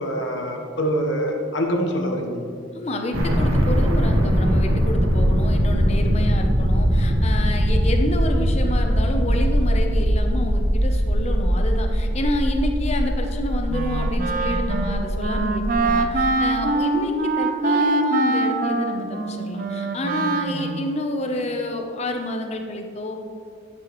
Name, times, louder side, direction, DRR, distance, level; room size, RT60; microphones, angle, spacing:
voice 1, 0.0-2.4, equal, 65° left, 2 dB, 1.1 m, -24 dB
voice 2, 2.7-23.2, left 1 dB, 35° left, 4 dB, 0.7 m, -28 dB
Huge bomb, 3.1-16.1, equal, 85° right, 1.2 m, -21 dB
Wind instrument woodwind instrument, 13.7-21.0, right 3 dB, 45° right, 0.5 m, -24 dB
10.5 x 6.2 x 3.1 m, 2.3 s
head